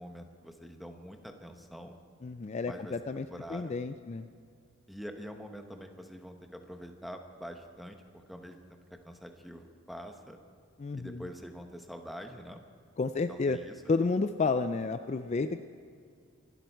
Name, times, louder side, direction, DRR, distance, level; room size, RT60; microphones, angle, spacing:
voice 1, 0.0-1.9 2.6-3.7 4.9-10.4 11.0-12.6 13.3-13.8, equal, ahead, 4 dB, 1.0 m, -45 dB
voice 2, 2.2-4.3 10.8-11.2 13.0-13.6 13.9-15.6, left 4 dB, 30° left, 9 dB, 0.3 m, -31 dB
25.0 x 12.0 x 4.6 m, 2.3 s
head